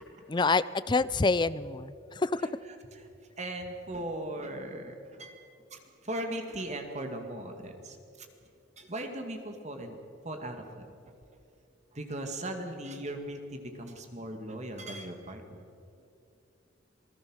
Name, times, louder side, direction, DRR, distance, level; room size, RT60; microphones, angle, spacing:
voice 1, 0.3-2.4, left 3 dB, 25° left, 16 dB, 0.5 m, -27 dB
voice 2, 3.4-5.4 5.7-5.8 6.0-8.3 8.8-9.9 10.2-10.6 11.9-15.7, right 1 dB, 35° right, 5 dB, 2.2 m, -38 dB
27.5 x 19.0 x 6.4 m, 2.5 s
head